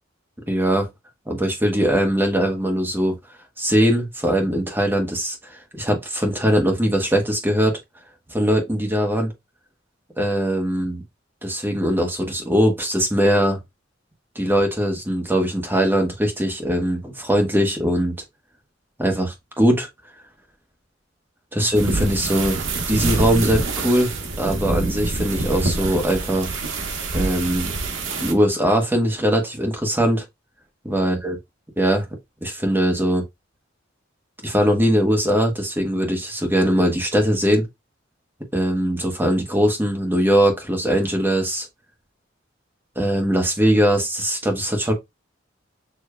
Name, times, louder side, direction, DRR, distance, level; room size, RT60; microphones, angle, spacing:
voice 1, 0.5-0.9 1.3-3.2 3.6-7.8 8.3-9.3 10.2-11.0 11.4-13.6 14.3-18.1 19.0-19.9 21.5-26.6 27.1-27.7 28.2-30.2 30.8-31.4 31.8-32.0 32.4-33.2 34.4-37.7 38.5-41.7 42.9-44.9, equal, 10° right, 1.3 m, -21 dB
sound 1, 21.7-28.3, right 3 dB, 80° right, 1.1 m, -26 dB
6.8 x 3.1 x 2.2 m
head